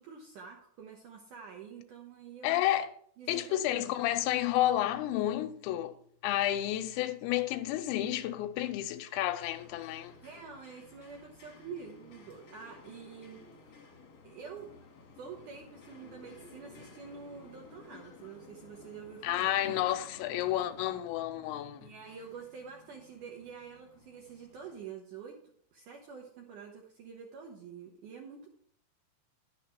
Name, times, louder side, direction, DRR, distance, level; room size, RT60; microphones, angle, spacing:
voice 1, 0.0-2.6 3.2-4.0 10.2-13.8 14.2-14.7 15.2-19.6 21.8-25.4 25.7-28.5, right 6 dB, 80° right, 1.8 m, -47 dB
voice 2, 2.4-2.9 3.3-5.9 6.2-10.1 19.2-21.9, left 13 dB, 90° left, 3.0 m, -31 dB
sound 1, 9.4-24.8, left 4 dB, 60° left, 1.6 m, -54 dB
11.5 x 6.6 x 4.5 m
omnidirectional pair, 5.2 m